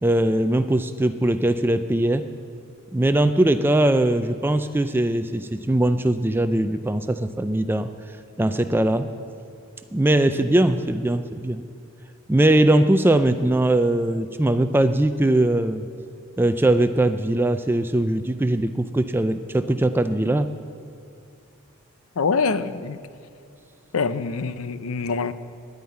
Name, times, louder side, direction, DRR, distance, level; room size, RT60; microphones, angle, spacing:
voice 1, 0.0-2.2 2.9-7.9 8.4-9.1 9.9-11.6 12.3-15.8 16.4-20.5, right 1 dB, 10° right, 10 dB, 0.3 m, -20 dB
voice 2, 22.2-23.0 23.9-25.3, left 4 dB, 75° left, 13 dB, 0.6 m, -24 dB
10.5 x 9.3 x 9.4 m, 2.4 s
head